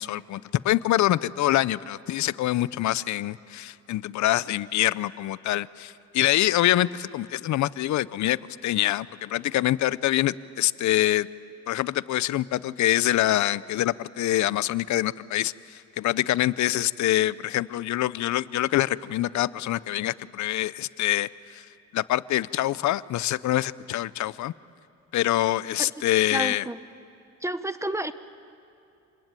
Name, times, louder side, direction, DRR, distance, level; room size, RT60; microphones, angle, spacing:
voice 1, 0.0-11.3 11.7-21.6 21.9-24.5 25.1-26.7, left 14 dB, 70° left, 19 dB, 0.6 m, -25 dB
voice 2, 26.3-26.8 27.4-28.1, right 1 dB, 10° right, 12 dB, 0.9 m, -30 dB
27.5 x 20.5 x 9.1 m, 2.7 s
cardioid pair, 90°, 30 cm